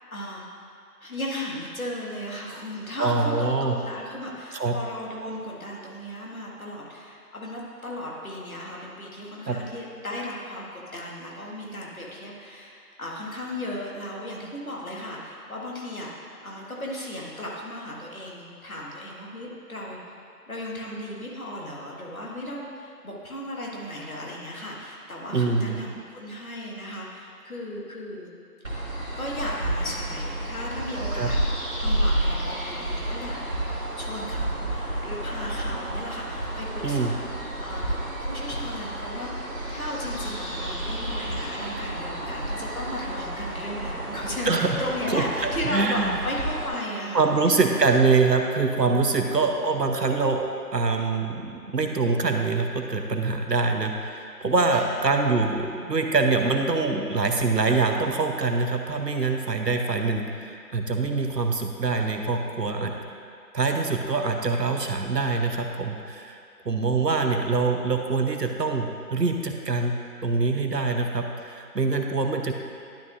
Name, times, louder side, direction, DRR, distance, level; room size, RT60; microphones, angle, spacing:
voice 1, 0.1-0.5 1.0-20.1 20.5-28.3 29.2-31.4 31.8-33.4 34.0-47.7 49.2-49.5 54.7-55.1, left 1 dB, 60° left, -3 dB, 1.8 m, -35 dB
voice 2, 3.0-3.8 4.5-4.8 9.5-9.6 25.3-25.8 31.1-31.3 36.8-37.1 44.5-44.8 45.1-46.2 47.1-50.4 50.7-62.9 63.5-66.4 66.6-69.9 70.2-72.5, right 4 dB, 85° right, 4 dB, 1.0 m, -24 dB
sound 1, 28.6-46.7, right 1 dB, 55° right, 1.9 m, -30 dB
11.5 x 6.2 x 2.5 m, 2.4 s
figure-of-eight pair, 165°, 48 cm